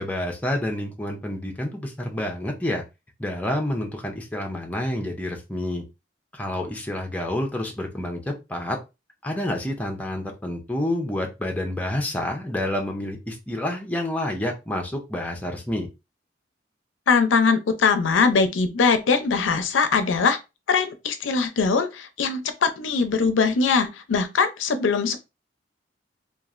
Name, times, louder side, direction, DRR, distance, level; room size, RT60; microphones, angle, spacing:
voice 1, 0.0-2.8 3.2-5.8 6.3-8.8 9.2-15.9, left 1 dB, 10° left, 0.5 m, -28 dB
voice 2, 17.1-20.4 20.7-25.2, left 5 dB, 90° left, 0.5 m, -21 dB
2.9 x 2.4 x 2.4 m
head